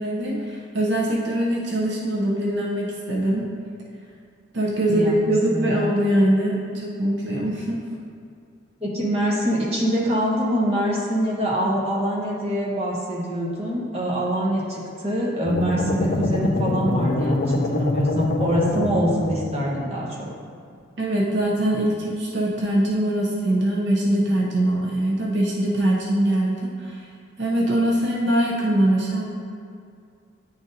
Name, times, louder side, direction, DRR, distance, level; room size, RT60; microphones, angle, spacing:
voice 1, 0.0-3.5 4.5-7.8 21.0-27.1 27.4-29.3, right 1 dB, 55° right, -3 dB, 0.6 m, -22 dB
voice 2, 5.5-5.9 8.8-20.3, equal, 30° right, -5 dB, 1.0 m, -24 dB
sound 1, 15.4-19.7, left 2 dB, 45° left, 0.4 m, -24 dB
9.5 x 4.0 x 2.6 m, 2.3 s
head